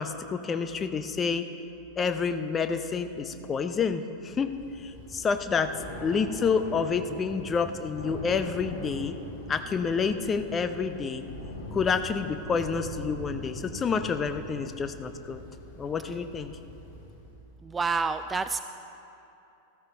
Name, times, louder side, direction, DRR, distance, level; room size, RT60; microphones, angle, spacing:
voice 1, 0.0-1.5 2.0-5.7 6.0-9.2 9.5-11.2 11.7-15.4 15.8-16.6, left 5 dB, 20° left, 9 dB, 0.6 m, -29 dB
Thunder / Rain, 4.5-17.4, left 1 dB, 50° left, 2.4 m, -42 dB
voice 2, 17.6-18.6, right 4 dB, 15° right, 10 dB, 0.3 m, -28 dB
13.5 x 13.5 x 4.0 m, 2.9 s
figure-of-eight pair, 90°, 0 cm